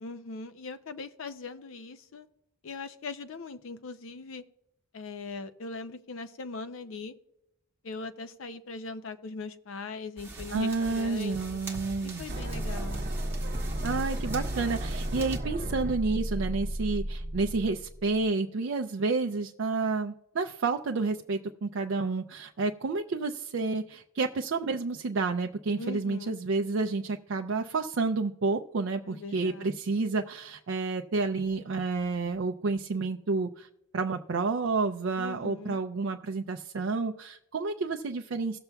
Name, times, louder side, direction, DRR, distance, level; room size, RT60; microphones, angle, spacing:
voice 1, 0.0-2.3 2.6-4.4 4.9-7.1 7.8-11.6 12.0-13.1 25.8-26.4 29.1-29.8 35.2-35.8, left 3 dB, 65° left, 10 dB, 0.5 m, -40 dB
sound 1, 10.2-15.4, right 2 dB, 10° right, 1.2 m, -42 dB
voice 2, 10.5-12.2 13.8-33.7 33.9-38.6, right 3 dB, 60° right, 5 dB, 0.4 m, -30 dB
sound 2, 12.3-18.3, right 1 dB, 40° right, 0.8 m, -33 dB
18.0 x 6.8 x 2.3 m, 0.85 s
head